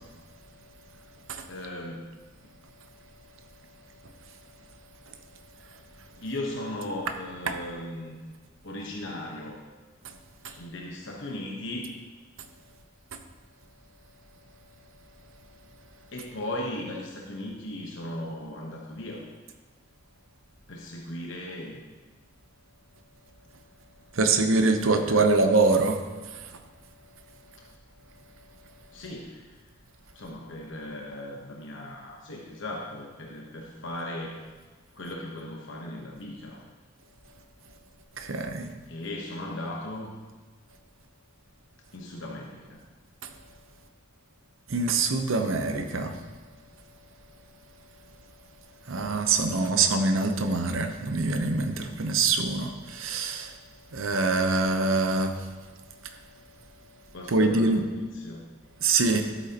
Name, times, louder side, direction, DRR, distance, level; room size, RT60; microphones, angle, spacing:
voice 1, 1.5-2.1 6.2-8.2 8.6-9.6 10.6-11.9 16.1-19.2 20.7-21.8 24.8-25.5 28.9-29.6 30.1-34.4 34.9-36.6 38.9-40.2 41.9-42.8 57.1-58.4, left 1 dB, 65° left, -1 dB, 1.1 m, -37 dB
voice 2, 24.2-26.0 38.2-38.7 44.7-46.2 48.9-53.5 53.9-55.4 57.3-57.8 58.8-59.3, right 3 dB, 80° right, 6 dB, 0.8 m, -24 dB
12.5 x 8.2 x 2.9 m, 1.3 s
head